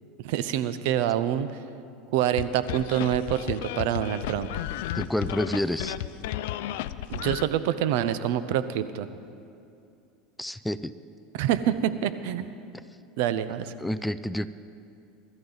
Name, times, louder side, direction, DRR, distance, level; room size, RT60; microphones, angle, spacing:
voice 1, 0.2-1.5 2.1-4.5 7.1-9.1 11.3-12.5 13.2-13.7, right 10 dB, 75° right, 13 dB, 0.7 m, -26 dB
sound 1, 2.4-7.4, left 13 dB, 80° left, 0.5 m, -33 dB
voice 2, 4.9-6.0 10.4-10.9 13.8-14.5, left 1 dB, 5° left, 13 dB, 0.4 m, -29 dB
23.0 x 13.0 x 4.0 m, 2.5 s
supercardioid pair, 110°, 0 cm